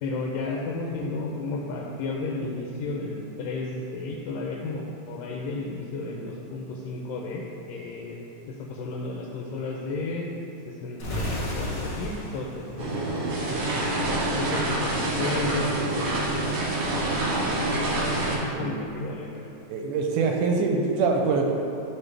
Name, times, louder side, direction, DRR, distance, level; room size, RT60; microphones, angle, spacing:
voice 1, 0.0-8.2 8.5-10.4 10.6-13.2 13.5-13.7 14.4-16.3 16.9-17.1 17.6-18.1 18.4-19.5, left 3 dB, 90° left, -1 dB, 2.3 m, -33 dB
sound 1, 11.0-13.9, left 1 dB, 50° left, 1.3 m, -33 dB
sound 2, 12.8-18.4, right 2 dB, 55° right, 1.7 m, -26 dB
voice 2, 19.7-21.5, right 4 dB, 80° right, 1 dB, 2.1 m, -24 dB
12.0 x 4.4 x 3.3 m, 2.7 s
omnidirectional pair, 3.8 m